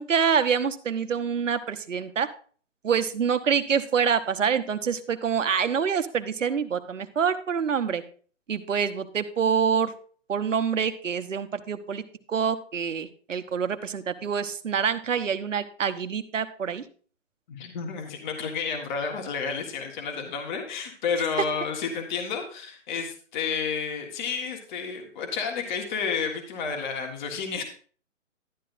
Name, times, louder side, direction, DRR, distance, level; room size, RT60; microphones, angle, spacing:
voice 1, 0.0-2.3 2.8-8.0 8.5-9.9 10.3-12.0 12.3-16.8, right 7 dB, 85° right, 10 dB, 1.0 m, -26 dB
voice 2, 17.5-27.6, left 6 dB, 40° left, 3 dB, 1.6 m, -31 dB
11.5 x 10.0 x 2.6 m, 0.43 s
hypercardioid pair, 140°, 37 cm